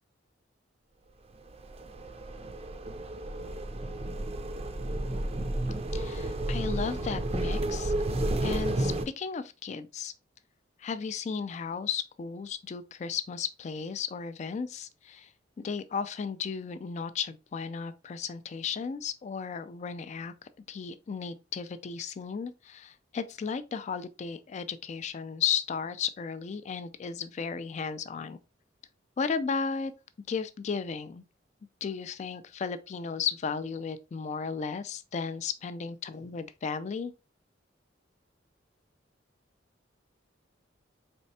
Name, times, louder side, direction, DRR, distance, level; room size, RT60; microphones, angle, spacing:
sound 1, 1.5-9.1, right 1 dB, 30° right, 0.4 m, -32 dB
voice 1, 5.9-7.9 8.4-10.1 10.8-15.3 15.6-20.3 20.7-28.4 29.2-29.9 30.3-31.2 31.8-37.1, left 6 dB, 35° left, 0.3 m, -34 dB
4.3 x 3.2 x 2.7 m
head